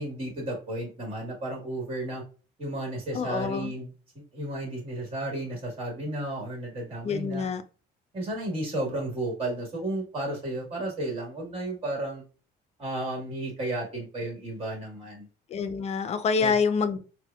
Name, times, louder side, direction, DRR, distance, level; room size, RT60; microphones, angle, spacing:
voice 1, 0.0-2.2 2.6-3.9 4.3-7.4 8.1-12.2 12.8-15.3 16.4-16.5, right 1 dB, 35° right, 0 dB, 1.4 m, -33 dB
voice 2, 3.1-3.7 7.0-7.6 15.5-17.0, left 5 dB, 40° left, 12 dB, 0.4 m, -26 dB
4.4 x 2.1 x 2.3 m, 0.36 s
cardioid pair, 110°, 17 cm